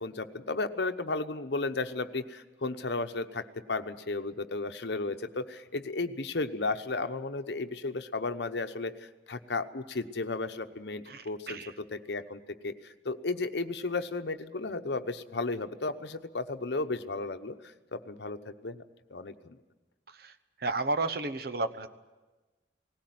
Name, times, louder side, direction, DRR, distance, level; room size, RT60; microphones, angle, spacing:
voice 1, 0.0-17.6 17.9-18.8 19.1-19.6, left 3 dB, 65° left, 8 dB, 1.0 m, -34 dB
voice 2, 11.1-11.7 20.2-20.3 20.6-21.9, right 3 dB, 55° right, 11 dB, 1.0 m, -32 dB
19.0 x 16.5 x 9.4 m, 1.2 s
head